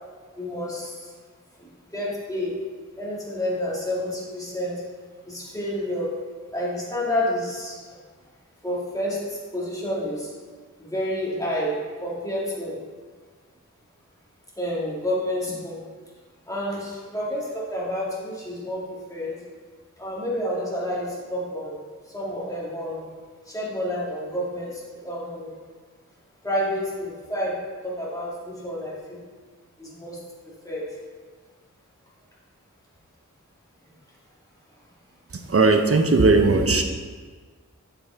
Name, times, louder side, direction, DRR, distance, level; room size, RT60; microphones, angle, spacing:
voice 1, 0.4-1.1 1.6-2.6 3.0-4.8 5.2-6.1 6.5-7.8 8.6-10.3 10.8-12.8 14.6-15.8 16.5-19.4 20.0-21.8 22.1-23.1 23.5-25.6 26.4-27.6 27.8-29.3 29.8-30.8, left 1 dB, 10° left, -6 dB, 2.1 m, -29 dB
voice 2, 35.3-36.8, right 3 dB, 45° right, 6 dB, 0.7 m, -18 dB
8.4 x 5.5 x 3.6 m, 1.5 s
wide cardioid pair, 50°, 32 cm